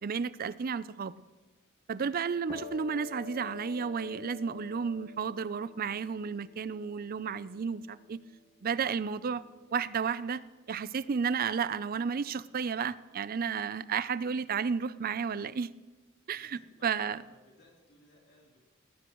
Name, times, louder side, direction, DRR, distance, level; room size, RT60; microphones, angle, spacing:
voice 1, 0.0-1.2 1.9-8.2 8.6-9.4 9.7-10.4 10.7-15.7 16.3-17.2, right 6 dB, 45° right, 16 dB, 0.4 m, -32 dB
sound 1, 2.5-10.0, left 6 dB, 35° left, 1.8 m, -49 dB
voice 2, 16.3-18.6, left 1 dB, 55° left, -3 dB, 3.3 m, -61 dB
18.0 x 17.5 x 3.1 m, 1.2 s
head